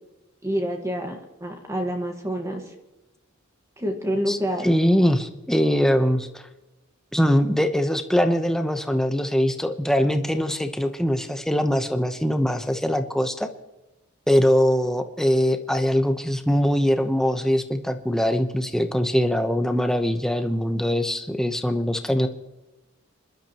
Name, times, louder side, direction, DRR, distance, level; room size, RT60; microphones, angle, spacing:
voice 1, 0.4-2.7 3.8-4.7, equal, 15° right, 3 dB, 1.5 m, -27 dB
voice 2, 4.6-6.4 7.1-13.5 14.3-22.3, equal, ahead, 6 dB, 0.9 m, -22 dB
27.5 x 12.0 x 3.0 m, 1.0 s
head